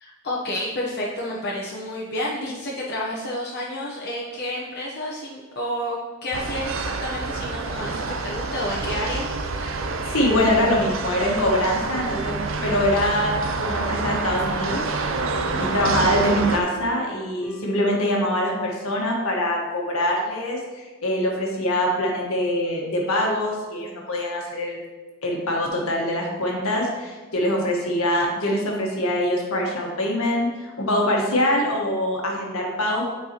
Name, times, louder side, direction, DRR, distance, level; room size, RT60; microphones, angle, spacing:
voice 1, 0.0-9.7, left 1 dB, 50° left, -5 dB, 0.9 m, -30 dB
sound 1, 6.3-16.6, right 3 dB, 65° right, 0.5 m, -27 dB
voice 2, 10.0-14.9 15.6-24.8 25.2-33.1, left 1 dB, 85° left, -1 dB, 1.4 m, -24 dB
sound 2, 14.4-19.1, equal, 5° left, 1.4 m, -42 dB
9.3 x 4.6 x 2.9 m, 1.3 s
head